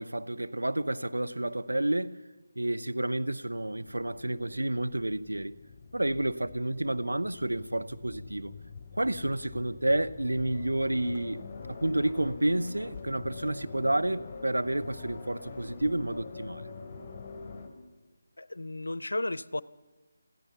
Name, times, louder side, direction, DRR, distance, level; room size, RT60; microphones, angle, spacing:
voice 1, 0.0-2.3 2.6-5.5 5.9-8.6 9.0-11.4 11.7-16.7, right 1 dB, 85° right, 0.8 m, -30 dB
sound 1, 3.7-17.7, left 4 dB, 25° left, 3.4 m, -45 dB
voice 2, 18.4-19.6, left 2 dB, 80° left, 0.6 m, -33 dB
27.5 x 15.5 x 7.0 m
figure-of-eight pair, 155°, 0 cm